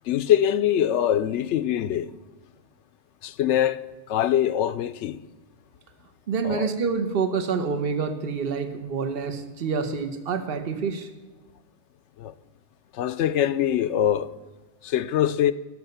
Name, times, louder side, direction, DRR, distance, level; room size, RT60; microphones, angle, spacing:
voice 1, 0.1-2.1 3.2-3.8 4.1-5.2 6.4-6.7 12.2-12.3 12.9-14.3 14.8-15.5, left 10 dB, 85° left, 0.9 m, -23 dB
voice 2, 6.3-11.1, right 5 dB, 55° right, 1.2 m, -27 dB
17.0 x 6.7 x 6.7 m
omnidirectional pair, 1.2 m